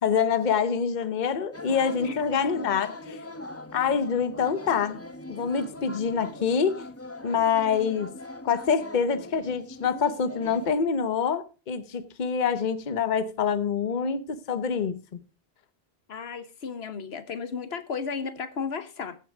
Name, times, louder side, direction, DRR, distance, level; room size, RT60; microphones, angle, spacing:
voice 1, 0.0-3.2 3.7-5.0 5.3-6.8 7.2-8.1 8.4-15.2, left 6 dB, 50° left, 1.0 m, -26 dB
sound 1, 1.5-10.7, left 1 dB, 15° left, 0.9 m, -41 dB
voice 2, 2.0-2.5 16.1-19.2, left 5 dB, 75° left, 1.2 m, -34 dB
15.0 x 6.7 x 4.8 m
omnidirectional pair, 1.1 m